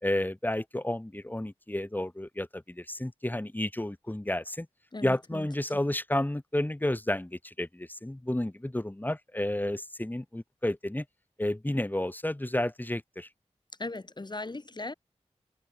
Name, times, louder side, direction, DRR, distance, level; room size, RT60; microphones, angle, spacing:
voice 1, 0.0-4.7 5.0-11.0 11.4-13.3, left 1 dB, 15° left, 3.1 m, -31 dB
voice 2, 4.9-5.5 13.8-14.9, left 2 dB, 40° left, 4.4 m, -38 dB
wide cardioid pair, 80°, 12 cm